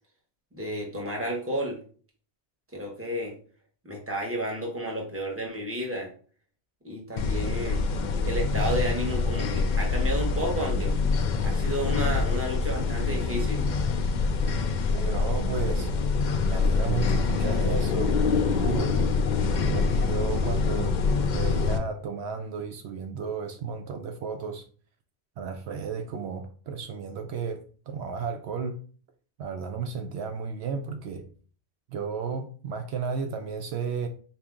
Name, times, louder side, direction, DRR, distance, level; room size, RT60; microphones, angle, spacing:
voice 1, 0.5-1.8 2.7-3.3 3.8-6.1 6.8-7.8 8.2-11.0 11.4-13.7, equal, 15° right, -1 dB, 1.0 m, -31 dB
sound 1, 7.2-21.8, left 4 dB, 55° left, 0.5 m, -25 dB
voice 2, 14.9-15.9 16.5-19.0 19.6-21.0 21.3-24.6 25.4-28.8 29.4-31.2 31.9-34.1, right 5 dB, 75° right, 6 dB, 0.8 m, -33 dB
4.2 x 2.7 x 3.5 m, 0.42 s
omnidirectional pair, 1.1 m